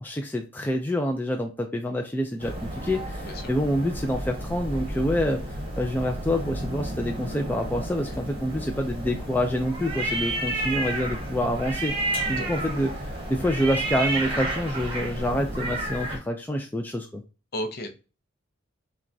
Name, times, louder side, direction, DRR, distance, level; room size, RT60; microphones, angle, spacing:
voice 1, 0.0-12.0 12.3-17.2, equal, 10° left, 3 dB, 0.3 m, -27 dB
sound 1, 2.4-16.2, right 1 dB, 25° right, 1.0 m, -31 dB
voice 2, 17.5-17.9, equal, 50° left, 7 dB, 0.6 m, -33 dB
5.8 x 2.3 x 2.6 m, 0.32 s
head